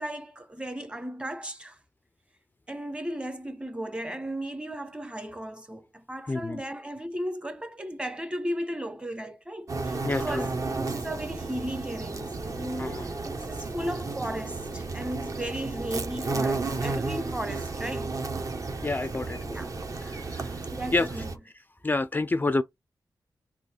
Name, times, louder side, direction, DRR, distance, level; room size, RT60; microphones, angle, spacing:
voice 1, 0.0-1.8 2.7-18.1 19.3-19.8 20.7-21.3, right 1 dB, 15° right, 1.0 m, -35 dB
voice 2, 6.3-6.6 10.0-10.5 12.8-13.1 18.8-19.4 20.0-21.2 21.8-22.6, left 2 dB, 25° left, 0.4 m, -29 dB
sound 1, 9.7-21.3, right 3 dB, 50° right, 1.1 m, -33 dB
3.9 x 2.8 x 4.3 m
cardioid pair, 65°, 7 cm